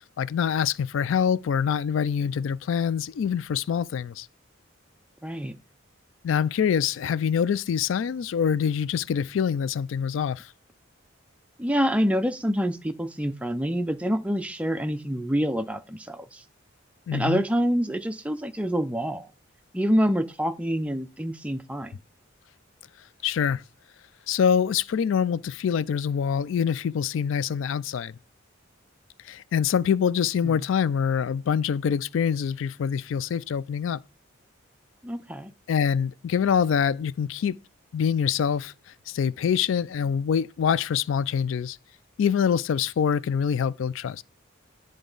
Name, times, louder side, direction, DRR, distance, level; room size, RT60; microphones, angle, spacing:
voice 1, 0.2-4.3 6.2-10.5 17.1-17.4 23.2-23.6 24.3-28.1 29.2-34.0 35.7-37.6 37.9-38.7 39.1-41.8 42.2-44.2, left 7 dB, 70° left, 0.3 m, -25 dB
voice 2, 5.2-5.6 11.6-16.4 17.1-19.3 19.7-21.9 35.0-35.5, equal, 5° right, 0.4 m, -26 dB
10.0 x 3.8 x 3.9 m
head